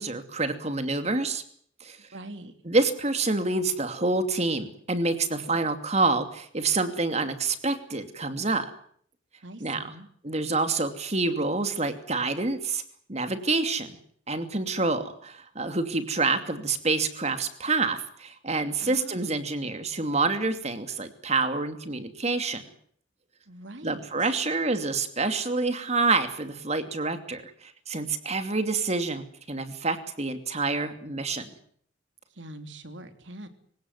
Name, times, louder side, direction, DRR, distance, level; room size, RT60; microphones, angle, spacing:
voice 1, 0.0-1.4 1.8-2.0 2.6-8.7 9.6-9.8 10.2-12.8 13.1-14.0 14.3-22.6 23.8-31.5, right 3 dB, 35° right, 9 dB, 2.6 m, -27 dB
voice 2, 2.1-2.5 9.4-10.1 18.8-19.5 23.5-24.1 32.3-33.5, right 1 dB, 70° right, 8 dB, 3.2 m, -43 dB
26.0 x 17.5 x 9.5 m, 0.63 s
head